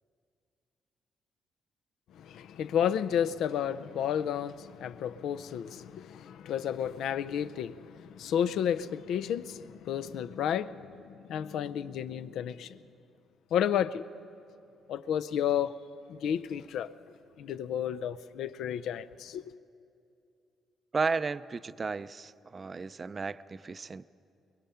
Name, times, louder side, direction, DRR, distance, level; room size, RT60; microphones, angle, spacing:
voice 1, 2.1-12.8 13.5-14.1 14.9-15.8 16.1-16.9 17.4-19.5, left 9 dB, 80° left, 0.5 m, -32 dB
voice 2, 20.9-24.0, right 4 dB, 35° right, 0.5 m, -33 dB
22.5 x 21.0 x 5.7 m
cardioid pair, 90°, 0 cm